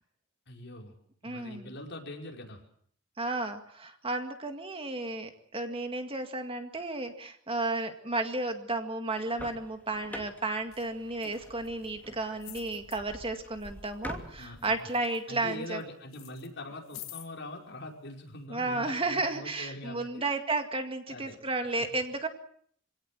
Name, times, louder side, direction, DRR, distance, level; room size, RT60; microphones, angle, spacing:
voice 1, 0.5-0.9 1.2-2.6 14.4-14.6 15.3-20.3 21.1-21.4, left 1 dB, 60° left, 1 dB, 5.3 m, -43 dB
voice 2, 1.2-1.7 3.2-15.8 18.5-22.3, right 2 dB, 25° right, 6 dB, 2.0 m, -33 dB
sound 1, 9.1-14.8, left 1 dB, 10° left, 2.7 m, -46 dB
sound 2, 10.7-10.9 11.2-11.9 12.4-13.0 13.6-14.1 14.4-15.8 16.1-17.3 18.1-18.2, left 12 dB, 85° left, 2.5 m, -48 dB
26.5 x 17.5 x 7.6 m, 0.63 s
head